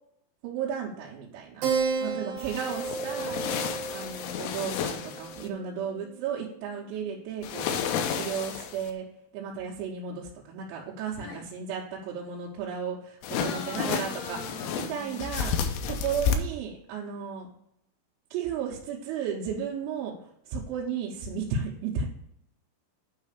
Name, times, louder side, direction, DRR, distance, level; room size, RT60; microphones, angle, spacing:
voice 1, 0.4-1.7 2.0-3.4 3.9-9.1 9.3-13.2 13.5-14.4 14.9-15.6 15.9-17.5 18.3-20.2 20.5-22.1, right 7 dB, 85° right, -3 dB, 3.7 m, -34 dB
Keyboard (musical), 1.6-6.6, right 5 dB, 65° right, 2.4 m, -33 dB
sound 1, 2.4-5.5 7.4-8.9 13.2-16.4, left 7 dB, 85° left, 3.1 m, -31 dB
voice 2, 13.3-15.3, left 2 dB, 65° left, 0 dB, 2.3 m, -41 dB
9.2 x 3.3 x 6.5 m, 0.74 s
omnidirectional pair, 6.0 m